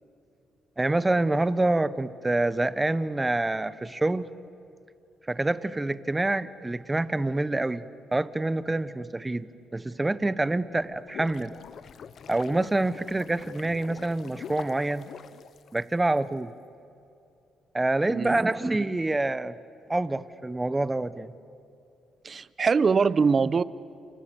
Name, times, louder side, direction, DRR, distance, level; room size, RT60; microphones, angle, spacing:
voice 1, 0.8-4.3 5.3-7.8 8.1-11.5 12.3-15.1 15.7-16.5 17.7-19.6 19.9-21.3, right 2 dB, 15° right, 15 dB, 1.0 m, -26 dB
sound 1, 10.8-16.2, left 7 dB, 60° left, 0.8 m, -44 dB
voice 2, 22.2-23.6, right 5 dB, 40° right, 18 dB, 0.7 m, -23 dB
29.5 x 28.0 x 7.1 m, 2.7 s
cardioid pair, 90°, 0 cm